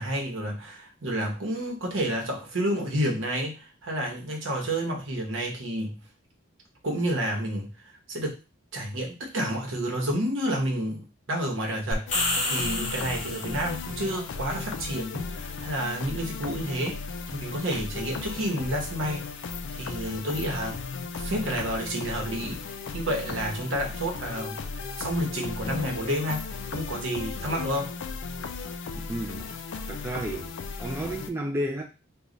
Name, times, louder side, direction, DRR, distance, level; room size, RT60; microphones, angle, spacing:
voice 1, 0.0-6.0 6.8-7.7 8.1-8.4 8.7-17.0 17.3-22.6 22.9-24.6 25.0-27.9, equal, 70° right, 0 dB, 1.0 m, -30 dB
sound 1, 11.9-13.8, left 2 dB, 35° left, 0.9 m, -29 dB
sound 2, 12.1-31.3, left 4 dB, 60° left, 0.4 m, -36 dB
voice 2, 28.9-29.5 29.9-30.5 30.8-31.8, right 1 dB, 10° right, 0 dB, 0.3 m, -32 dB
3.1 x 2.3 x 3.8 m, 0.31 s
head